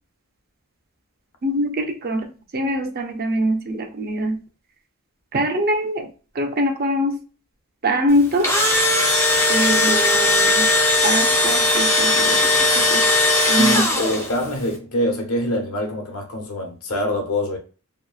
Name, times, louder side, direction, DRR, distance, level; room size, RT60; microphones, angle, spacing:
voice 1, 1.4-2.3 2.5-4.4 5.3-6.1 6.4-7.2 7.8-8.5 9.5-10.7 11.0-12.4 12.8-13.0 13.5-13.8, equal, 45° right, 0.5 m, -23 dB
Engine / Drill, 8.2-14.4, left 2 dB, 15° left, 0.7 m, -18 dB
voice 2, 13.6-17.6, left 1 dB, 80° left, 0.9 m, -25 dB
2.9 x 2.1 x 2.3 m
head